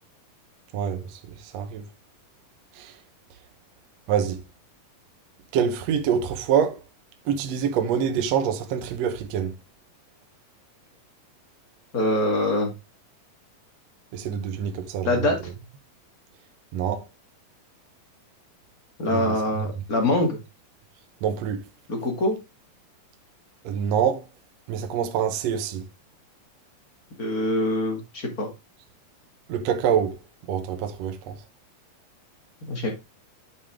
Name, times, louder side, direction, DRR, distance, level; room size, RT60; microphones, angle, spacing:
voice 1, 0.7-1.8 2.8-3.0 4.1-4.4 5.5-6.8 7.3-9.6 14.1-15.3 16.7-17.1 19.1-19.7 21.2-21.6 23.6-24.3 24.7-25.9 29.5-30.2 30.5-31.4, right 8 dB, 65° right, 1.7 m, -26 dB
voice 2, 11.9-12.7 15.0-15.4 19.0-20.4 21.9-22.4 27.2-28.5 32.6-32.9, left 1 dB, 30° left, 1.9 m, -24 dB
8.5 x 5.6 x 3.6 m
omnidirectional pair, 4.1 m